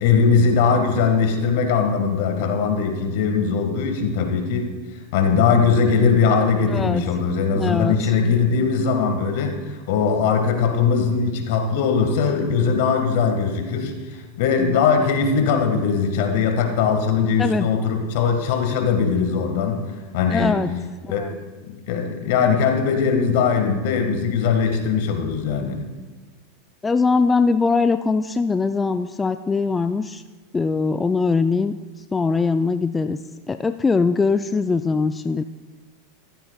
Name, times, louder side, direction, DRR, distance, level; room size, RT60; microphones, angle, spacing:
voice 1, 0.0-4.7 5.1-19.8 20.1-20.6 21.1-21.2 21.7-25.8, left 5 dB, 65° left, 5 dB, 1.8 m, -20 dB
voice 2, 6.7-7.0 7.5-7.9 17.4-17.7 20.3-20.7 21.0-21.3 26.8-30.2 30.5-31.7 32.1-33.2 33.5-35.4, left 4 dB, 15° left, 10 dB, 0.4 m, -21 dB
14.5 x 14.5 x 2.4 m, 1.3 s
hypercardioid pair, 95°, 0 cm